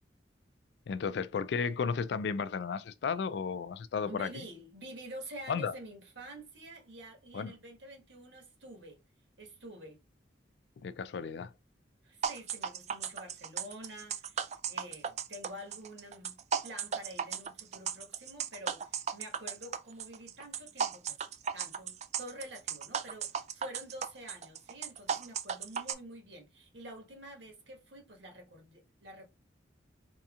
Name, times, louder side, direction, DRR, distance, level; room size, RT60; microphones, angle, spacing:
voice 1, 0.9-4.3 5.5-5.7 7.3-7.5 10.8-11.5, left 5 dB, 65° left, 0.3 m, -33 dB
voice 2, 4.1-9.0 9.4-10.0 12.0-21.3 21.5-29.2, right 1 dB, 80° right, 1.4 m, -48 dB
sound 1, 12.2-25.9, right 7 dB, 35° right, 0.3 m, -36 dB
4.5 x 2.8 x 2.4 m
head